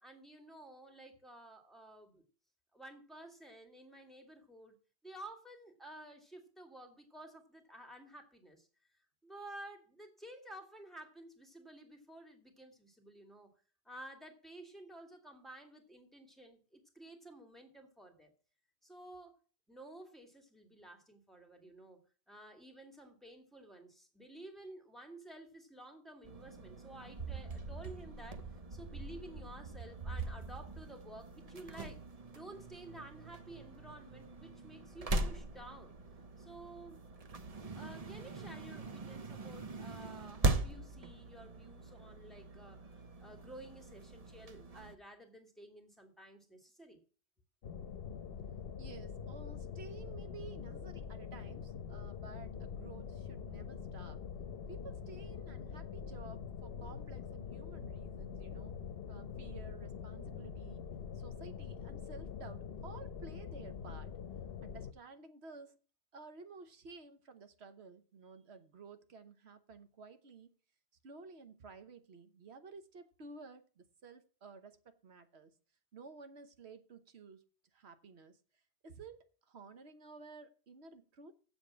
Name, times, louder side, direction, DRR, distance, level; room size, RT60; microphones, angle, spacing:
voice 1, 0.0-2.3 2.7-4.8 5.0-8.7 9.2-13.5 13.9-18.3 18.8-19.4 19.7-22.0 22.3-28.4 28.7-32.0 32.3-36.0 36.4-37.0 37.7-42.8 43.2-47.0, right 1 dB, ahead, 2.0 m, -52 dB
sound 1, 26.2-44.9, right 2 dB, 40° right, 0.8 m, -41 dB
sound 2, 47.6-64.9, left 7 dB, 70° left, 1.0 m, -44 dB
voice 2, 48.8-54.2 54.7-58.7 59.1-60.9 61.1-64.1 64.6-65.8 66.1-70.5 71.0-75.5 75.9-77.5 77.7-78.4 78.8-81.3, right 4 dB, 85° right, 1.4 m, -53 dB
7.6 x 7.3 x 7.3 m
omnidirectional pair, 1.1 m